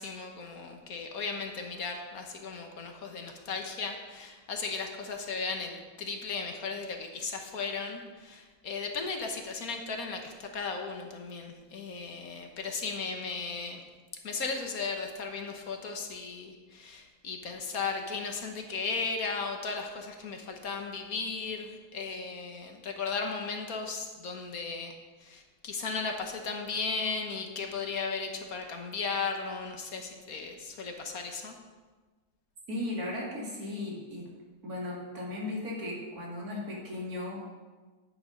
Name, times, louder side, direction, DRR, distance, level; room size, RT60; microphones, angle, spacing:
voice 1, 0.0-13.8 14.2-24.9 25.2-31.5, left 4 dB, 60° left, 3 dB, 1.5 m, -36 dB
voice 2, 32.7-34.3 34.6-37.4, left 2 dB, 65° right, -4 dB, 2.9 m, -36 dB
9.6 x 8.7 x 5.1 m, 1.3 s
omnidirectional pair, 1.7 m